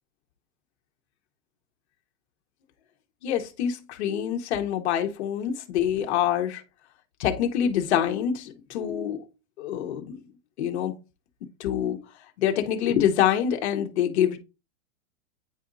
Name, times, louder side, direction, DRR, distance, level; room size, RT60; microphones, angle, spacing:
voice 1, 3.2-6.6 7.2-9.2 9.6-10.2 10.6-10.9 11.6-12.0 12.4-14.4, left 9 dB, 55° left, 1.0 m, -25 dB
9.1 x 4.2 x 2.6 m
supercardioid pair, 175°, 41 cm